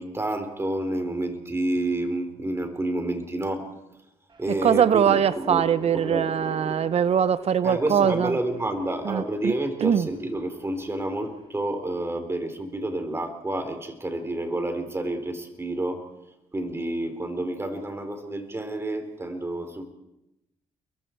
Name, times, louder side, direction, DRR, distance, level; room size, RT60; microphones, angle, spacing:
voice 1, 0.0-3.8 4.4-5.2 5.5-6.3 7.6-16.1 16.5-19.8, right 1 dB, 20° right, 7 dB, 4.2 m, -29 dB
sound 1, 4.3-11.6, equal, 40° right, 4.2 m, -41 dB
voice 2, 4.6-8.3 9.1-9.5 9.8-10.1, right 8 dB, 60° right, 15 dB, 0.7 m, -22 dB
29.5 x 22.5 x 4.7 m, 0.89 s
cardioid pair, 85°, 12 cm